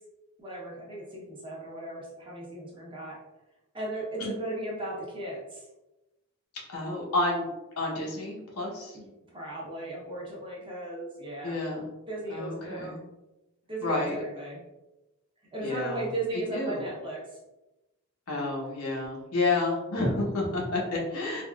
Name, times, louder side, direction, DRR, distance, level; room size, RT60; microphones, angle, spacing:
voice 1, 0.4-3.2 3.7-5.6 8.9-11.6 12.1-13.0 13.7-14.6 15.5-17.2, right 2 dB, 25° right, -5 dB, 0.8 m, -36 dB
voice 2, 6.7-7.5 7.8-9.0 11.4-11.9 12.3-13.0 13.8-14.1 15.6-16.0 16.5-16.9 18.3-21.4, left 2 dB, 75° left, -2 dB, 0.9 m, -30 dB
3.5 x 2.3 x 2.3 m, 1.0 s
head